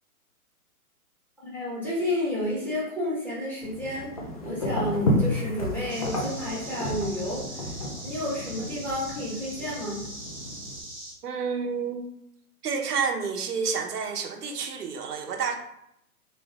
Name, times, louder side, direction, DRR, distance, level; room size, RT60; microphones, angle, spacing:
voice 1, 1.4-4.1 4.4-7.7 8.0-10.0, left 1 dB, 5° left, -8 dB, 1.3 m, -31 dB
sound 1, 3.6-10.8, equal, 25° left, 0.4 m, -32 dB
sound 2, 5.9-11.1, right 1 dB, 10° right, 1.0 m, -41 dB
voice 2, 11.2-12.0 12.6-15.6, right 5 dB, 85° right, 5 dB, 0.9 m, -29 dB
3.8 x 3.3 x 3.5 m, 0.76 s
hypercardioid pair, 145°, 45 cm